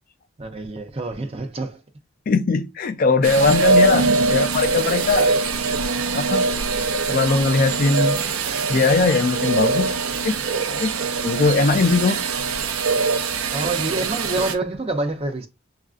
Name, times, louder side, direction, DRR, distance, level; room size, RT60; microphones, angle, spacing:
voice 1, 0.4-1.8 3.9-4.3 13.5-15.5, right 2 dB, 25° right, 0.6 m, -27 dB
voice 2, 2.3-4.0 4.3-5.3 6.1-6.5 6.9-8.2 8.7-9.9 10.2-10.4 10.7-11.0 11.2-12.2, left 3 dB, 40° left, 0.3 m, -20 dB
sound 1, 3.2-14.5, right 3 dB, 80° right, 0.6 m, -22 dB
6.3 x 2.4 x 2.4 m
head